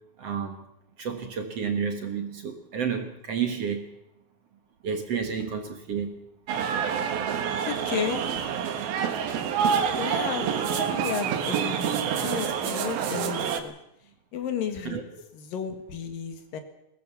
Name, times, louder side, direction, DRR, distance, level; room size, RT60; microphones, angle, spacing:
voice 1, 0.2-0.6 1.0-3.9 4.8-6.2 14.8-15.0, right 7 dB, 50° right, 6 dB, 2.2 m, -30 dB
sound 1, 6.5-13.6, right 7 dB, 85° right, 3.3 m, -27 dB
voice 2, 7.6-8.4 10.0-13.7 14.3-15.0 15.3-16.6, left 8 dB, 70° left, 8 dB, 3.4 m, -33 dB
21.5 x 18.0 x 7.0 m, 0.82 s
omnidirectional pair, 4.2 m